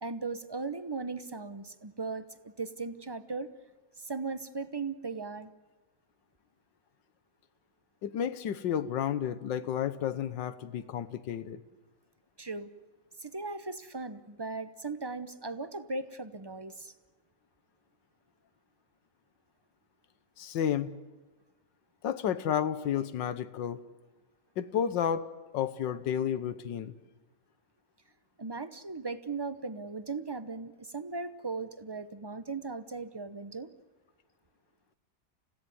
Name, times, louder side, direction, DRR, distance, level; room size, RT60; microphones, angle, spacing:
voice 1, 0.0-3.5 4.0-5.5 12.4-12.7 13.2-16.9 28.4-33.7, right 3 dB, 30° right, 12 dB, 0.4 m, -38 dB
voice 2, 8.0-11.6 20.4-20.9 22.0-23.8 24.6-25.3 25.5-26.9, left 9 dB, 85° left, 14 dB, 1.7 m, -31 dB
29.5 x 16.5 x 9.4 m, 1.2 s
omnidirectional pair, 2.0 m